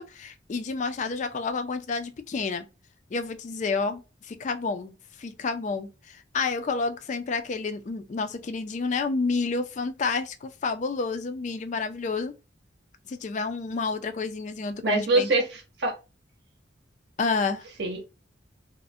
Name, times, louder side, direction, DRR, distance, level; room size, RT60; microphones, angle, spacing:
voice 1, 0.0-2.7 3.1-4.0 4.3-12.3 13.1-15.3 17.2-17.7, left 4 dB, 40° left, 0.3 m, -29 dB
voice 2, 14.8-15.9 17.8-18.0, right 2 dB, 60° right, 0.7 m, -24 dB
2.4 x 2.1 x 2.5 m
head